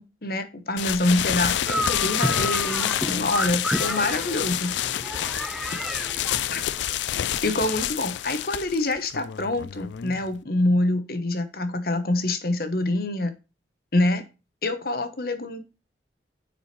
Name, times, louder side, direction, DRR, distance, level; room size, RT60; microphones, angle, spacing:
voice 1, 0.0-4.7 6.5-6.6 7.4-13.3 13.9-14.2 14.6-15.6, left 2 dB, 55° left, 10 dB, 1.1 m, -26 dB
sound 1, 0.8-10.4, left 11 dB, 75° left, 0.4 m, -28 dB
sound 2, 1.7-6.9, equal, ahead, 0.4 m, -31 dB
9.4 x 4.7 x 3.2 m, 0.30 s
head